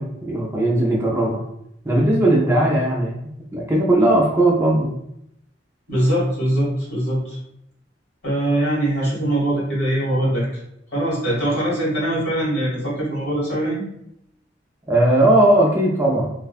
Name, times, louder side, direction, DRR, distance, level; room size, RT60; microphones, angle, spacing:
voice 1, 0.0-1.4 1.8-4.9 14.9-16.3, right 1 dB, 15° right, -4 dB, 0.4 m, -18 dB
voice 2, 5.9-7.4 8.2-10.5 10.9-13.9, right 1 dB, 60° left, -7 dB, 1.5 m, -22 dB
2.5 x 2.2 x 2.4 m, 0.77 s
head